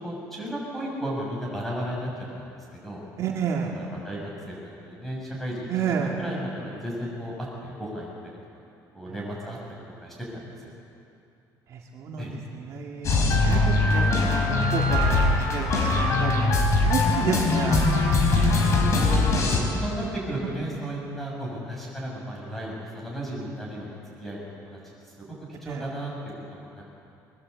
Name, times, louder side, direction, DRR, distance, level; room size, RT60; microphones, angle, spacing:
voice 1, 0.0-2.1 2.8-3.0 3.7-8.1 8.9-9.6 10.0-10.5 12.2-12.3 18.9-24.8 25.6-26.1 26.5-26.8, right 1 dB, 5° left, -4 dB, 7.5 m, -34 dB
voice 2, 3.2-3.8 5.7-6.2 11.7-15.8 16.2-16.4 16.8-17.8 18.8-19.0 25.7-25.8, right 7 dB, 50° right, -1 dB, 2.4 m, -30 dB
sound 1, 13.0-19.6, left 2 dB, 45° left, 4.4 m, -21 dB
22.5 x 22.0 x 8.5 m, 2.6 s
cardioid pair, 160°, 7 cm